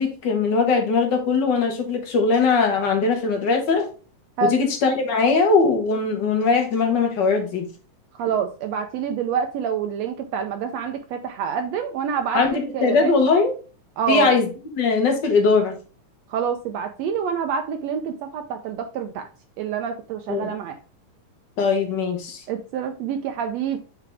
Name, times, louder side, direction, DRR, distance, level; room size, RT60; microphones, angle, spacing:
voice 1, 0.0-3.9 4.4-7.7 12.3-13.5 14.1-14.4 14.7-15.7 20.3-20.5 21.6-22.4, left 4 dB, 50° left, 4 dB, 1.4 m, -20 dB
voice 2, 4.4-4.7 8.1-13.1 14.0-14.4 16.3-19.3 19.6-20.8 22.5-23.8, right 7 dB, 80° right, 6 dB, 1.5 m, -27 dB
6.9 x 4.7 x 3.4 m, 0.35 s
omnidirectional pair, 3.8 m